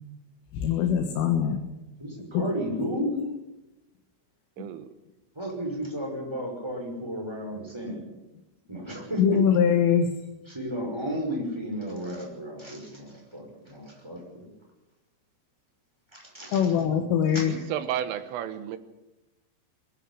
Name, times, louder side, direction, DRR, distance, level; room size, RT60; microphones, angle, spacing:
voice 1, 0.5-1.6 2.3-2.4 9.2-10.2 16.5-17.7, left 8 dB, 85° left, 4.1 m, -23 dB
voice 2, 2.0-3.1 5.4-8.1 8.7-9.4 10.5-14.5 16.1-17.4, equal, 5° right, 5.4 m, -33 dB
voice 3, 4.6-4.9 17.5-18.8, right 10 dB, 85° right, 3.8 m, -32 dB
22.0 x 13.0 x 9.9 m
omnidirectional pair, 5.7 m